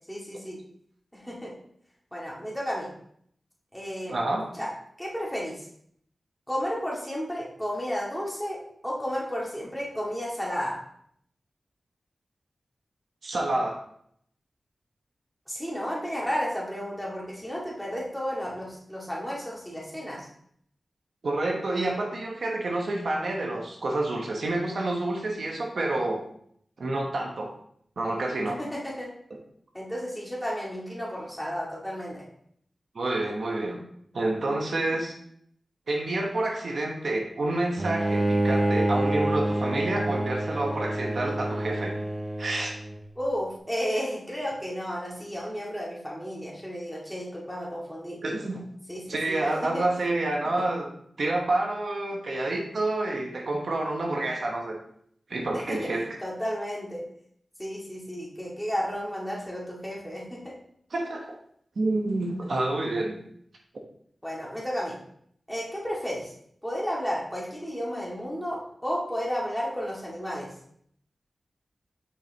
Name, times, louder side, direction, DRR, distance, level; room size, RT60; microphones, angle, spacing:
voice 1, 0.1-0.6 1.1-1.5 2.1-2.9 3.7-4.2 4.5-4.7 5.0-5.6 6.5-8.6 8.8-10.8 15.5-20.3 28.5-29.1 29.7-32.2 43.2-48.2 48.9-49.4 49.7-49.8 55.7-57.0 57.6-60.5 64.2-65.0 65.5-66.3 66.6-70.5, equal, 5° left, -5 dB, 2.1 m, -32 dB
voice 2, 4.1-4.5 13.2-13.8 21.2-26.2 26.8-27.5 28.0-28.6 29.3-29.4 32.9-33.8 34.1-35.1 35.9-41.9 42.4-42.8 48.2-48.6 49.1-50.9 51.2-54.8 55.3-56.0 60.9-61.3 61.8-63.2, right 2 dB, 70° right, 0 dB, 1.1 m, -28 dB
Bowed string instrument, 37.8-43.0, right 1 dB, 25° right, 0.6 m, -27 dB
6.9 x 5.3 x 2.9 m, 0.67 s
wide cardioid pair, 90°, 0 cm